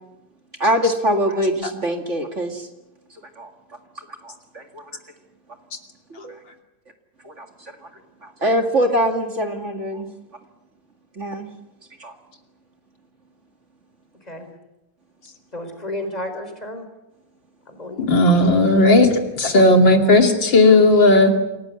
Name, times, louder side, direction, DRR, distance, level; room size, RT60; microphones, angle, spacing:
voice 1, 0.6-2.7 3.1-3.5 4.2-4.9 6.1-6.4 7.2-7.7 8.2-10.1 11.2-11.5 12.0-12.1, equal, 40° right, 5 dB, 2.5 m, -23 dB
voice 2, 15.5-16.9 17.7-18.1, left 1 dB, 20° left, 6 dB, 4.5 m, -32 dB
voice 3, 18.0-21.4, left 2 dB, 80° left, 4 dB, 3.4 m, -14 dB
28.0 x 18.5 x 9.8 m, 0.99 s
omnidirectional pair, 2.0 m